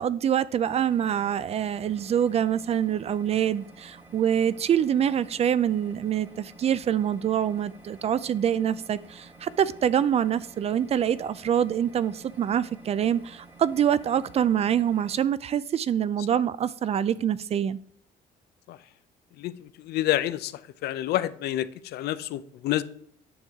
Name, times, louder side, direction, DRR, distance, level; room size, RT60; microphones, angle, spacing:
voice 1, 0.0-17.8, right 9 dB, 40° right, 0.4 m, -25 dB
sound 1, 0.6-15.2, right 2 dB, 10° right, 1.1 m, -51 dB
voice 2, 19.4-20.5 20.8-22.8, left 13 dB, 70° left, 0.5 m, -28 dB
9.2 x 6.2 x 3.6 m
cardioid pair, 110°, 17 cm